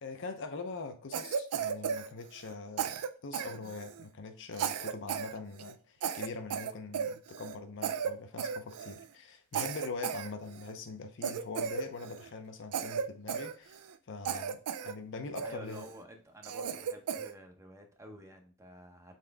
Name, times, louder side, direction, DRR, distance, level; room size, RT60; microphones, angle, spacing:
voice 1, 0.0-13.8 14.1-15.8, left 3 dB, 60° left, 0.6 m, -43 dB
Cough, 1.1-2.5 2.8-4.0 4.5-5.3 5.6-5.7 6.0-7.6 7.8-8.1 8.4-9.0 9.5-10.7 11.2-12.3 12.7-14.0 14.2-14.9 15.4-15.9 16.4-17.3, right 7 dB, 85° right, 0.4 m, -35 dB
voice 2, 15.4-19.2, right 1 dB, 15° right, 0.6 m, -50 dB
4.1 x 3.7 x 3.3 m
head